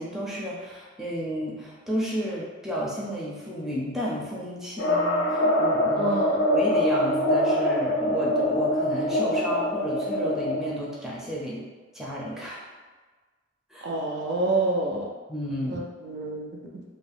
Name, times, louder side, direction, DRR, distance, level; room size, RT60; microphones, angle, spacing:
voice 1, 0.0-6.2 6.5-11.6 11.9-12.7 13.7-13.9 15.3-15.8, equal, ahead, -7 dB, 0.5 m, -32 dB
sound 1, 4.8-10.7, left 1 dB, 65° left, 0.5 m, -24 dB
voice 2, 6.0-6.5 13.8-15.1 15.7-16.8, right 2 dB, 60° right, -1 dB, 0.4 m, -28 dB
2.7 x 2.0 x 3.4 m, 1.4 s
head